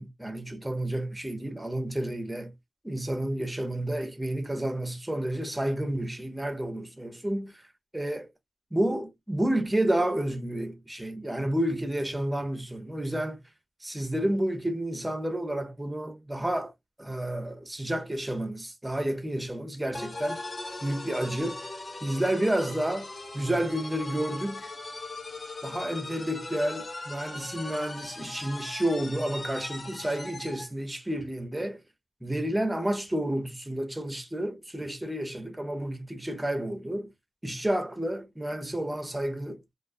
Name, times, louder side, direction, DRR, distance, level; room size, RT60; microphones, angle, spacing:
voice 1, 0.0-2.5 2.8-7.6 7.9-8.3 8.7-13.4 13.8-16.7 17.0-20.4 20.8-21.6 22.0-24.7 25.6-31.8 32.2-37.1 37.4-39.6, right 1 dB, 10° right, 0.6 m, -30 dB
sound 1, 19.9-30.7, left 2 dB, 35° left, 0.6 m, -40 dB
2.3 x 2.2 x 2.4 m
cardioid pair, 75°, 0 cm